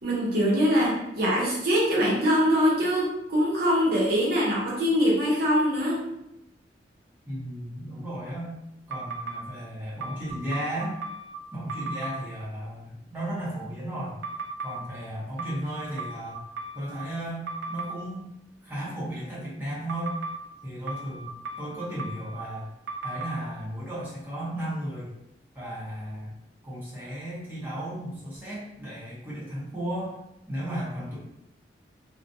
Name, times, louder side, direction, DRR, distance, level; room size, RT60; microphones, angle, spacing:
voice 1, 0.0-6.0, equal, 60° right, -6 dB, 0.7 m, -23 dB
voice 2, 7.3-8.5 8.9-11.0 11.5-14.2 14.6-16.4 16.7-18.3 18.6-20.2 20.6-21.3 21.6-22.7 23.0-25.1 25.5-26.3 26.6-30.2 30.5-31.2, right 1 dB, 10° right, -9 dB, 0.9 m, -34 dB
sound 1, 8.9-9.4 10.0-11.4 11.7-12.2 14.2-14.8 15.4-17.0 17.5-17.9 19.9-20.4 20.9-22.4 22.9-23.3, right 3 dB, 75° right, 0.3 m, -36 dB
2.3 x 2.1 x 2.6 m, 0.86 s
head